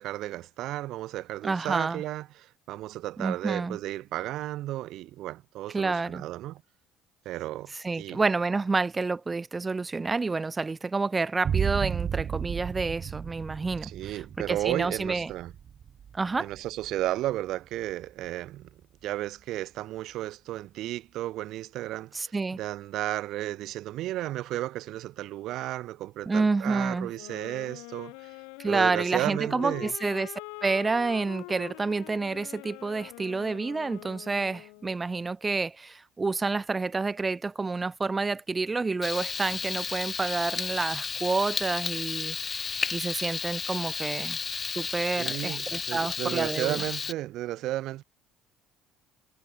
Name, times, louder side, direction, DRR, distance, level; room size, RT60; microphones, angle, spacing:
voice 1, 0.0-6.6 7.2-7.7 8.0-8.2 13.8-15.5 16.4-28.4 28.7-29.9 45.2-48.0, right 15 dB, 70° right, 1.6 m, -33 dB
voice 2, 1.4-2.0 3.2-3.8 5.7-6.2 7.8-15.3 16.1-16.5 22.1-22.6 26.3-27.1 28.6-30.3 30.6-44.4 44.8-46.8, right 3 dB, 20° right, 0.5 m, -29 dB
sound 1, 11.4-18.8, right 8 dB, 45° right, 1.0 m, -34 dB
sound 2, 27.1-35.0, left 34 dB, 85° left, 0.8 m, -44 dB
Frying (food), 39.0-47.1, left 5 dB, 30° left, 1.0 m, -33 dB
supercardioid pair, 90°, 0 cm